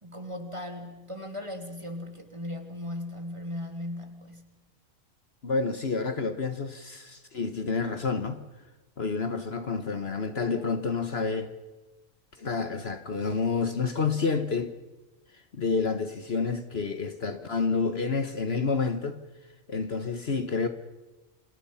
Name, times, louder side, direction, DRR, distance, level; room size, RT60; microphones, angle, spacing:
voice 1, 0.0-4.5, left 1 dB, 20° right, 3.0 m, -37 dB
voice 2, 5.4-8.4 9.0-11.5 12.4-14.7 15.5-19.2 19.7-20.7, left 4 dB, 50° left, 1.5 m, -29 dB
29.0 x 27.0 x 5.7 m
omnidirectional pair, 1.4 m